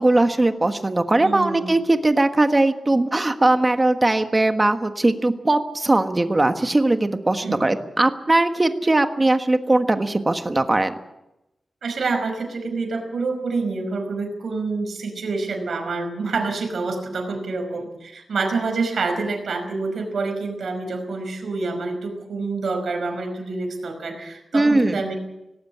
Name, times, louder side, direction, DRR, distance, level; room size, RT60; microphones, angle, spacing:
voice 1, 0.0-10.9 24.5-25.0, right 2 dB, 20° right, 7 dB, 1.4 m, -20 dB
voice 2, 1.2-1.8 7.4-7.7 11.8-25.2, right 3 dB, 65° right, 4 dB, 5.2 m, -27 dB
18.5 x 17.5 x 8.6 m, 0.91 s
wide cardioid pair, 160°, 0 cm